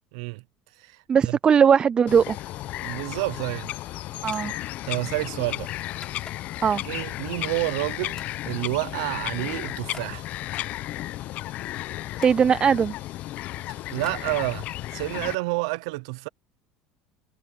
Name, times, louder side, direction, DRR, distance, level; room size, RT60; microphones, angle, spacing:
voice 1, 0.1-0.4 0.8-1.4 2.8-3.7 4.8-5.7 6.8-10.3 13.7-16.3, right 23 dB, 80° right, 0.8 m, -29 dB
voice 2, 1.1-2.4 4.2-4.5 6.6-6.8 12.2-12.9, right 7 dB, 30° right, 0.4 m, -19 dB
Bird vocalization bird call bird song, 2.1-15.3, left 15 dB, 55° left, 0.8 m, -34 dB
sound 1, 4.3-4.6 4.9-6.7 7.2-7.9 8.2-8.4 8.7-10.2 10.9-12.4 13.0-14.9, left 4 dB, 20° left, 6.1 m, -50 dB
supercardioid pair, 100°, 3 cm